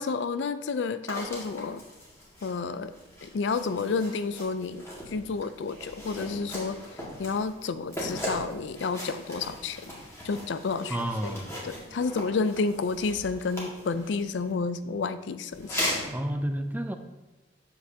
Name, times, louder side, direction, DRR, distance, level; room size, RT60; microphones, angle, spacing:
voice 1, 0.0-1.8 2.4-2.9 3.2-6.8 7.2-9.9 10.2-11.0 11.2-11.4 11.6-16.0, left 4 dB, 75° left, 12 dB, 0.4 m, -30 dB
sound 1, 1.1-14.5 15.5-16.1, left 1 dB, 15° left, 2.0 m, -39 dB
voice 2, 10.9-11.5 16.1-17.0, right 1 dB, 10° right, 7 dB, 0.4 m, -30 dB
7.9 x 7.9 x 2.8 m, 1.1 s
head